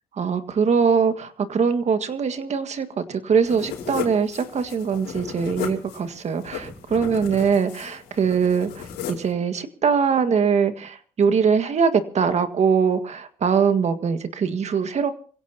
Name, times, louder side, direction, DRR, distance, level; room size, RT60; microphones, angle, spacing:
voice 1, 0.2-15.1, right 6 dB, 40° right, 9 dB, 1.8 m, -22 dB
sound 1, 3.4-9.3, left 8 dB, 80° left, 4.6 m, -35 dB
27.5 x 16.0 x 2.8 m, 0.43 s
cardioid pair, 110°, 17 cm